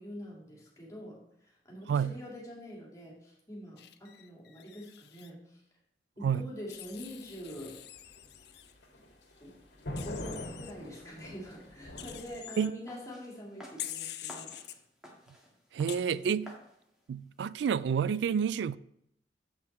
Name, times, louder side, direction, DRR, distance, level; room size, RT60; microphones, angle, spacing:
voice 1, 0.0-5.6 6.2-7.8 9.4-9.6 10.0-14.5, equal, 20° left, 2.1 m, -45 dB
Wild animals, 3.8-5.3 6.7-8.7 10.0-10.7 12.0-12.7 13.8-14.8 15.9-16.0, left 12 dB, 65° left, 0.5 m, -45 dB
sound 1, 6.7-12.4, left 1 dB, 80° left, 1.8 m, -44 dB
sound 2, 12.9-17.9, equal, 5° right, 1.5 m, -54 dB
voice 2, 15.7-16.5 17.1-18.8, right 7 dB, 75° right, 0.3 m, -29 dB
7.8 x 5.8 x 4.1 m
head